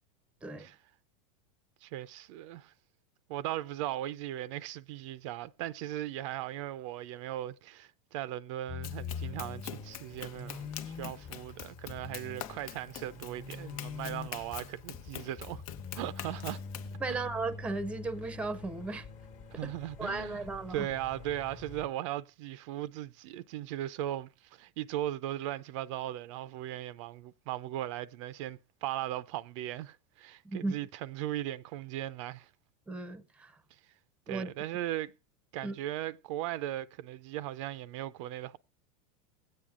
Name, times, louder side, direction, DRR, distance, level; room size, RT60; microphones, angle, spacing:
voice 1, 1.8-2.7 3.3-15.6 15.9-16.6 17.1-17.2 19.5-32.5 34.3-35.1 35.5-38.6, right 13 dB, 60° right, 0.4 m, -38 dB
sound 1, 8.7-21.9, left 5 dB, 40° left, 1.1 m, -44 dB
Run, 8.8-16.9, left 11 dB, 80° left, 0.8 m, -45 dB
voice 2, 17.0-19.1 19.6-19.7 20.0-20.9 30.4-30.8 32.9-33.5 34.3-34.5 35.6-35.7, right 3 dB, 5° right, 0.6 m, -36 dB
17.5 x 8.7 x 2.4 m
supercardioid pair, 145°, 18 cm